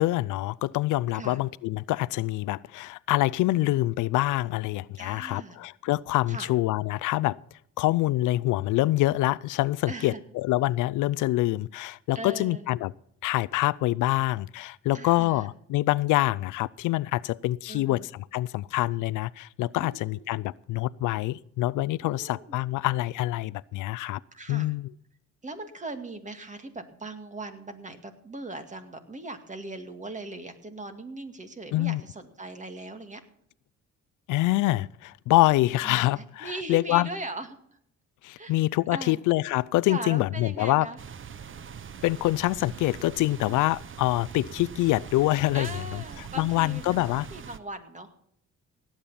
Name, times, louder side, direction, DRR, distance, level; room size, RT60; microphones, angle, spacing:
voice 1, 0.0-7.4 7.8-12.9 13.2-24.2 24.5-24.9 31.7-32.0 34.3-37.1 38.2-40.9 42.0-46.0 46.4-47.3, left 17 dB, 85° left, 0.5 m, -26 dB
voice 2, 5.0-5.6 6.3-6.5 9.9-10.2 12.1-12.7 14.9-15.5 17.7-18.1 19.8-20.2 22.0-22.5 24.3-24.7 25.4-33.2 35.8-37.5 38.4-38.6 38.9-39.2 39.9-41.0 43.4-43.6 45.5-48.1, right 2 dB, 25° right, 2.2 m, -39 dB
sound 1, 41.0-47.6, right 7 dB, 40° right, 0.9 m, -43 dB
17.5 x 8.8 x 5.7 m
cardioid pair, 90°, 30 cm